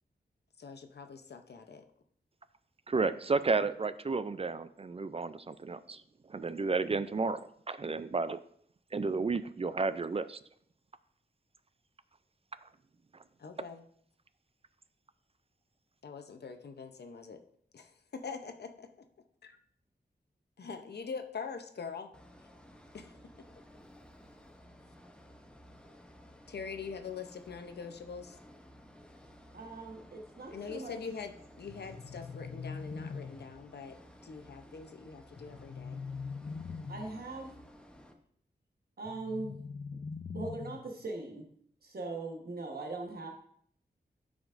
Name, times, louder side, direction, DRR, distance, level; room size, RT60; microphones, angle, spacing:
voice 1, 0.6-1.8 13.4-13.8 16.0-17.4 17.7-19.1 20.6-22.1 22.9-23.1 26.5-28.4 30.5-31.3 31.6-36.0, left 5 dB, 70° left, 6 dB, 0.7 m, -43 dB
voice 2, 2.9-6.0 6.3-8.4 8.9-10.4, right 4 dB, 35° right, 13 dB, 0.3 m, -32 dB
sound 1, 22.1-38.1, equal, 5° left, 0.8 m, -56 dB
voice 3, 29.5-31.0 36.9-37.5 39.0-39.6 40.3-41.4 41.8-43.3, right 2 dB, 60° right, 1 dB, 1.2 m, -40 dB
sound 2, 31.7-33.7 35.4-37.2 39.0-41.0, left 5 dB, 40° left, 0.4 m, -42 dB
12.5 x 5.1 x 2.5 m, 0.64 s
wide cardioid pair, 100°, 18 cm